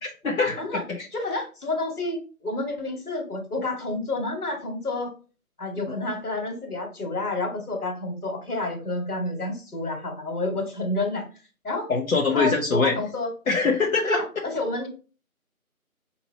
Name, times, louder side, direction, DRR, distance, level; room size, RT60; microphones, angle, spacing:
voice 1, 0.2-1.0 11.9-12.9 13.5-14.2, left 4 dB, 70° left, -2 dB, 0.9 m, -23 dB
voice 2, 1.1-5.1 5.6-11.3 11.6-11.9 12.3-13.3 14.0-14.9, left 2 dB, 90° left, 3 dB, 1.8 m, -29 dB
5.0 x 2.8 x 2.7 m, 0.36 s
figure-of-eight pair, 175°, 44 cm